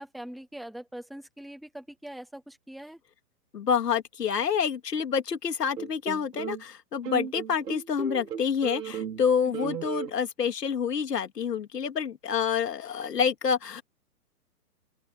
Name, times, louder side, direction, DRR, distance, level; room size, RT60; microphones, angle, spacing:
voice 1, 0.0-3.0 9.5-9.7, right 1 dB, ahead, 0.6 m, -42 dB
voice 2, 3.5-13.8, left 7 dB, 85° left, 2.8 m, -28 dB
sound 1, 5.8-6.6 7.0-9.3 9.5-10.1, right 7 dB, 85° right, 5.9 m, -35 dB
open air
hypercardioid pair, 160°, 47 cm